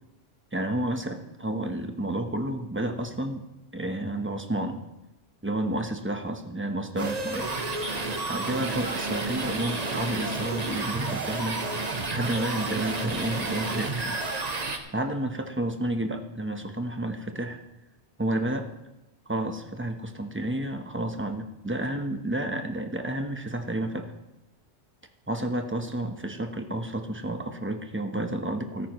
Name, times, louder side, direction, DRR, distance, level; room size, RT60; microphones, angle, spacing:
voice 1, 0.5-3.4 3.7-4.8 5.4-7.5 8.3-11.6 12.1-14.2 14.6-17.6 18.2-18.7 19.3-24.1 25.3-28.9, right 1 dB, 10° right, 5 dB, 1.0 m, -31 dB
sound 1, 7.0-14.8, right 3 dB, 40° right, 1.1 m, -30 dB
14.5 x 13.5 x 3.1 m, 0.99 s
omnidirectional pair, 1.2 m